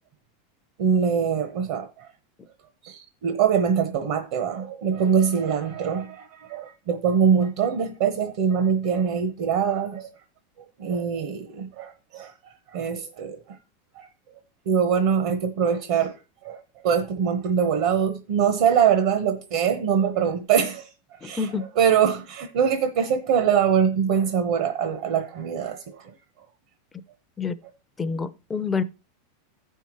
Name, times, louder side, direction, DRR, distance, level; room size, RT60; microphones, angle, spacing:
voice 1, 0.8-2.1 2.8-10.1 10.8-12.3 12.7-13.6 14.0-14.1 14.7-16.1 16.4-20.9 21.2-21.5 21.8-26.1, right 7 dB, 60° right, 1.0 m, -23 dB
voice 2, 21.2-21.6 27.4-27.6 28.0-28.8, left 5 dB, 10° left, 0.5 m, -27 dB
15.0 x 5.6 x 3.0 m
supercardioid pair, 155°, 0 cm